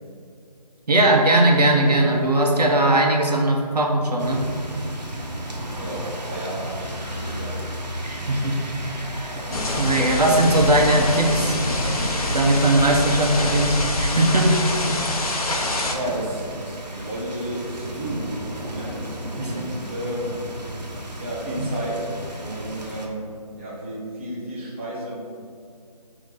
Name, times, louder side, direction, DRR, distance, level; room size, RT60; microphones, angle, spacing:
voice 1, 0.9-4.5 8.0-8.5 9.2-9.4 9.8-11.6 12.3-14.5 14.9-15.0 19.4-19.7 21.6-21.7, right 1 dB, 70° right, 1 dB, 1.1 m, -19 dB
sound 1, 4.2-23.1, right 1 dB, 90° right, 1.3 m, -34 dB
voice 2, 5.8-7.7 15.8-18.3 18.7-20.4 21.2-25.1, right 1 dB, 20° right, -8 dB, 0.8 m, -32 dB
sound 2, 9.5-15.9, left 1 dB, 60° left, 0.9 m, -25 dB
8.5 x 3.1 x 4.0 m, 2.4 s
figure-of-eight pair, 170°, 21 cm